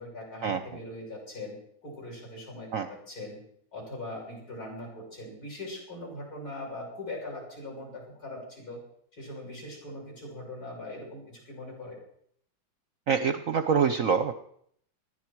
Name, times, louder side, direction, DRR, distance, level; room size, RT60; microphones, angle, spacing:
voice 1, 0.0-1.6 1.8-3.4 3.7-8.8 9.2-12.0, left 1 dB, 50° left, -2 dB, 7.1 m, -41 dB
voice 2, 13.1-14.3, right 6 dB, 55° right, 9 dB, 1.0 m, -25 dB
20.0 x 14.0 x 4.7 m, 0.67 s
omnidirectional pair, 2.0 m